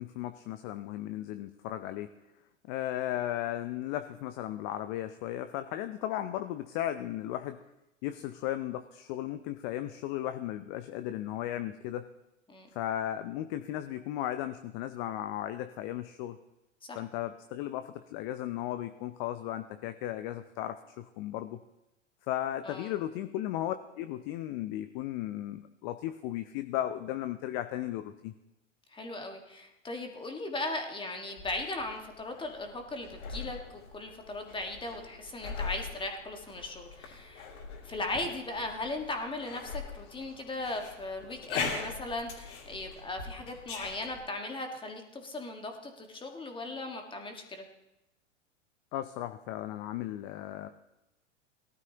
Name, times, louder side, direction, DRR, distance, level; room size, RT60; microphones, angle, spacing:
voice 1, 0.0-2.1 2.7-7.6 8.0-12.1 12.7-16.4 17.0-21.6 22.3-28.3 48.9-50.7, left 13 dB, 40° left, 10 dB, 0.6 m, -35 dB
voice 2, 28.9-37.5 37.8-47.6, left 2 dB, 15° left, 3 dB, 1.6 m, -38 dB
sound 1, 31.4-44.2, left 5 dB, 55° left, 2.9 m, -42 dB
18.5 x 12.5 x 2.9 m, 0.94 s
hypercardioid pair, 100°, 38 cm